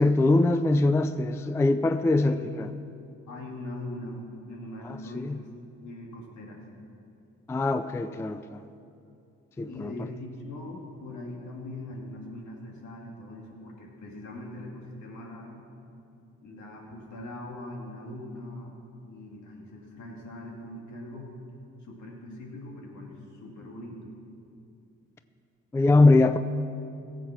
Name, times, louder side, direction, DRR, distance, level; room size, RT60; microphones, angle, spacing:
voice 1, 0.0-2.7 5.1-5.4 7.5-8.6 9.6-9.9 25.7-26.4, left 2 dB, 10° left, 0.3 m, -22 dB
voice 2, 3.3-5.5 5.8-6.6 9.7-15.6 16.4-18.8 19.0-21.3 21.8-24.1, left 1 dB, 70° left, 2.6 m, -41 dB
16.5 x 7.6 x 5.9 m
cardioid pair, 90°, 30 cm